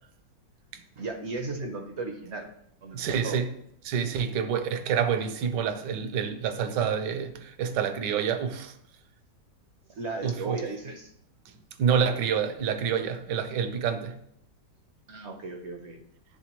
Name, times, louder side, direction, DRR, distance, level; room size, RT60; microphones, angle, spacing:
voice 1, 0.9-2.5 2.8-3.4 9.9-11.1 15.1-16.0, right 3 dB, 60° right, 0.7 m, -35 dB
voice 2, 2.9-3.5 3.8-8.7 10.2-10.6 11.8-14.2, right 7 dB, 80° right, 1.2 m, -27 dB
10.0 x 3.6 x 2.9 m
omnidirectional pair, 2.0 m